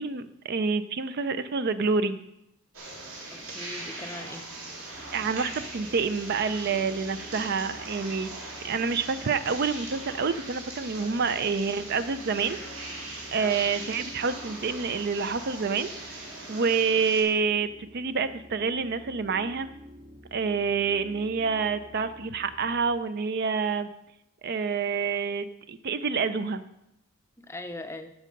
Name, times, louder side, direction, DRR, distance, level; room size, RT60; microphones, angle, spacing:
voice 1, 0.0-2.2 5.1-8.3 8.6-12.6 13.3-15.9 16.5-19.7 20.3-23.9 24.4-26.6, right 5 dB, 45° right, 12 dB, 0.4 m, -27 dB
sound 1, 2.7-17.2, right 2 dB, 60° right, 3.2 m, -40 dB
voice 2, 3.3-4.5 13.4-13.7 27.4-28.1, left 2 dB, 10° left, 7 dB, 0.5 m, -40 dB
sound 2, 4.9-23.0, equal, 25° right, 0.8 m, -50 dB
14.0 x 5.4 x 5.2 m, 0.83 s
head